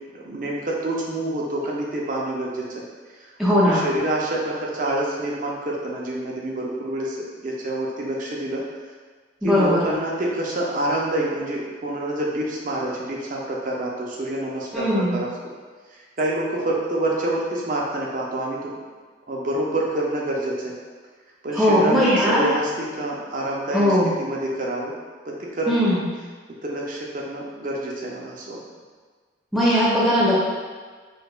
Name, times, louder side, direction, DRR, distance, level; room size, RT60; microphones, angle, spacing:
voice 1, 0.1-2.8 3.6-7.2 7.4-8.6 9.4-15.3 15.9-18.7 19.3-20.7 21.4-24.9 25.2-26.0 26.6-28.6, right 1 dB, 45° right, -3 dB, 0.6 m, -27 dB
voice 2, 3.4-3.9 9.4-9.8 14.7-15.2 21.5-22.4 23.7-24.1 25.7-26.1 29.5-30.3, equal, ahead, -9 dB, 0.6 m, -19 dB
4.6 x 2.3 x 2.3 m, 1.5 s
head